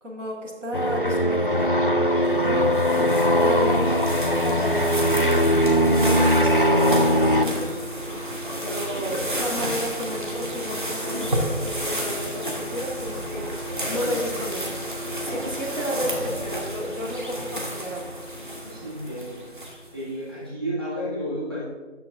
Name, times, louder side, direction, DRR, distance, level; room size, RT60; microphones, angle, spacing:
voice 1, 0.0-1.8 2.4-5.0 5.9-7.8 8.6-14.8 15.2-18.1, equal, 80° right, -2 dB, 2.2 m, -32 dB
sound 1, 0.7-7.5, equal, 45° left, 0.4 m, -20 dB
sound 2, 2.2-20.0, equal, 40° right, 1.4 m, -31 dB
voice 2, 18.6-19.4 19.9-21.6, equal, 20° right, -9 dB, 1.7 m, -31 dB
9.5 x 6.5 x 3.7 m, 1.3 s
figure-of-eight pair, 175°, 37 cm